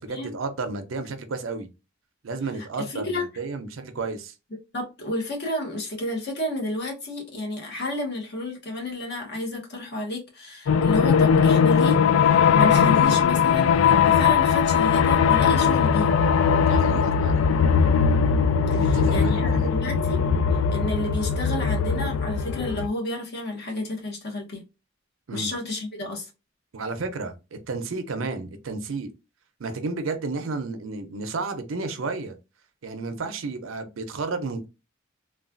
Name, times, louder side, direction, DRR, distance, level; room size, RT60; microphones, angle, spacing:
voice 1, 0.0-1.7 2.2-4.3 16.6-17.5 18.7-19.7 25.3-25.5 26.7-29.1 29.6-32.4 32.8-34.7, right 3 dB, 80° right, 0.6 m, -32 dB
voice 2, 2.8-3.3 4.7-12.0 12.2-16.1 18.7-20.2 20.7-24.6 25.3-26.3, left 2 dB, 55° left, 1.0 m, -31 dB
sound 1, 10.7-22.9, left 6 dB, 75° left, 0.3 m, -20 dB
3.1 x 2.3 x 2.5 m
head